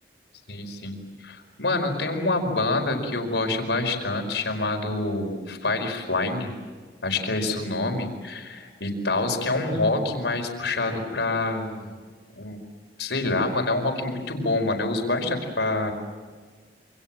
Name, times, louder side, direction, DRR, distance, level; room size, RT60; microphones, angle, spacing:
voice 1, 0.5-6.5 7.0-11.9 12.4-12.6 13.0-15.9, left 2 dB, 85° left, 4 dB, 4.9 m, -26 dB
28.0 x 25.5 x 7.5 m, 1.5 s
head